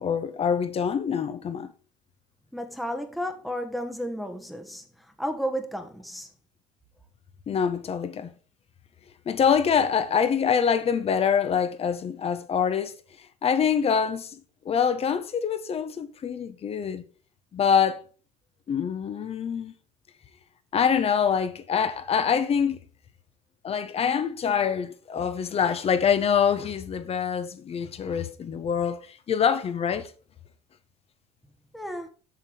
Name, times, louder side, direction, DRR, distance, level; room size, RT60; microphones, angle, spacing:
voice 1, 0.0-1.7 7.5-8.3 9.2-12.9 13.4-14.4 14.6-17.0 17.5-18.0 18.7-19.7 20.7-22.8 23.6-30.1, left 7 dB, 40° left, 1.3 m, -25 dB
voice 2, 2.5-6.3 31.7-32.1, equal, ahead, 1.4 m, -33 dB
7.8 x 6.6 x 4.6 m
hypercardioid pair, 75°, 16 cm